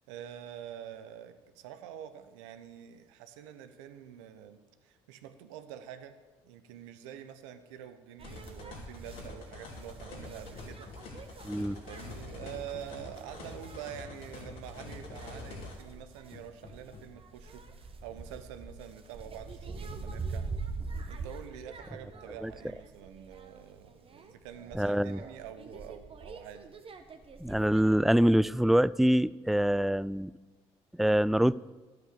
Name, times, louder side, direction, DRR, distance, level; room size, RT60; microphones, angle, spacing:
voice 1, 0.1-6.1 6.4-20.5 21.1-26.7, right 10 dB, 80° right, 9 dB, 0.9 m, -46 dB
sound 1, 8.2-15.7, left 3 dB, 65° left, 2.9 m, -46 dB
sound 2, 8.2-27.8, right 4 dB, 35° right, 1.4 m, -45 dB
Hammer, 9.9-11.3 11.7-13.1 13.7-15.8 16.3-17.3, left 5 dB, 45° left, 1.7 m, -53 dB
voice 2, 11.4-11.8 22.4-22.5 24.8-25.2 27.4-30.3 31.0-31.6, equal, ahead, 20 dB, 0.3 m, -25 dB
12.0 x 8.3 x 6.7 m, 1.3 s
hypercardioid pair, 55°, 15 cm